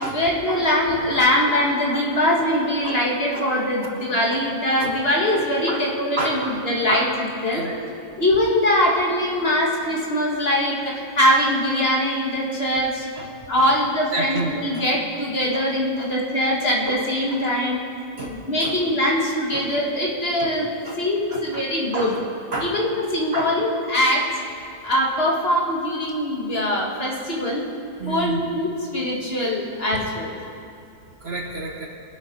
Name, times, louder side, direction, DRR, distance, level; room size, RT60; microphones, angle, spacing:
voice 1, 0.1-7.1 7.4-7.6 8.2-13.1 13.5-17.8 18.3-20.7 21.0-22.1 22.6-24.2 24.8-27.7 28.1-30.3, left 1 dB, 40° left, -3 dB, 2.3 m, -22 dB
voice 2, 5.3-5.8 6.2-6.5 6.9-7.1 7.5-8.0 13.2-13.3 13.6-13.7 14.1-14.8 15.5-15.6 16.0-16.1 16.4-16.5 16.9-17.0 17.3-17.4 18.2-18.7 19.1-19.2 19.5-19.7 20.4-20.5 20.8-21.0 21.3-21.7 21.9-22.2 22.5-22.7 23.3-23.5 28.0-28.4 31.2-31.9, right 2 dB, 45° right, 0 dB, 1.4 m, -30 dB
22.5 x 8.0 x 5.5 m, 2.7 s
omnidirectional pair, 1.6 m